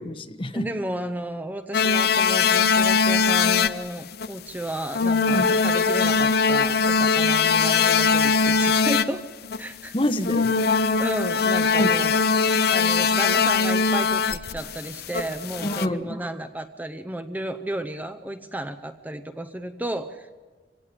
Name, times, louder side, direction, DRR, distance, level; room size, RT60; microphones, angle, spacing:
voice 1, 0.0-0.7 5.3-5.5 9.9-10.5 11.8-11.9 15.6-16.2, left 1 dB, 30° left, 8 dB, 1.3 m, -27 dB
voice 2, 0.5-9.3 9.6-9.9 11.0-12.2 12.7-20.4, right 1 dB, 10° right, 7 dB, 0.7 m, -33 dB
sound 1, 1.7-3.8 4.1-4.3 4.9-9.0 9.4-9.7 10.2-15.9, left 5 dB, 60° left, 0.7 m, -21 dB
25.5 x 17.5 x 8.5 m, 1.4 s
head